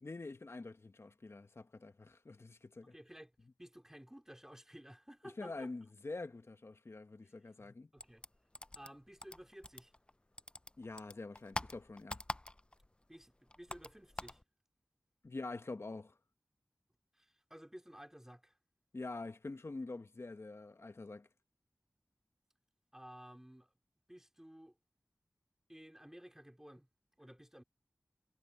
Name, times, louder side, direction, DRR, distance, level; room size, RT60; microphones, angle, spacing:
voice 1, 0.0-2.9 5.4-7.9 10.8-12.2 15.2-16.2 18.9-21.3, left 3 dB, 50° left, 1.0 m, -46 dB
voice 2, 2.8-3.3 3.6-5.7 7.2-7.3 7.9-8.2 8.7-9.9 13.1-14.4 17.1-18.6 22.9-23.7 24.1-24.7 25.7-26.9 27.2-27.6, equal, 10° right, 3.4 m, -54 dB
sound 1, 8.0-10.1 10.4-12.9 13.1-14.4, left 1 dB, 20° left, 0.5 m, -44 dB
wide cardioid pair, 60°, 6 cm